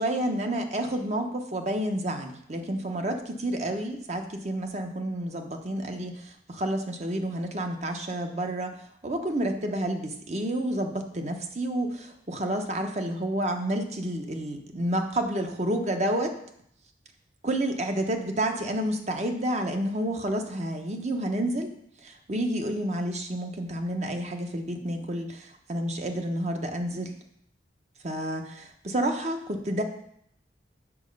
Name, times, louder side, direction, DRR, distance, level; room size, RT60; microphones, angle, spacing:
voice 1, 0.0-8.7 9.0-16.4 17.4-21.7 22.0-27.2 28.0-29.8, right 1 dB, 40° right, 4 dB, 1.0 m, -30 dB
7.2 x 6.3 x 5.3 m, 0.70 s
head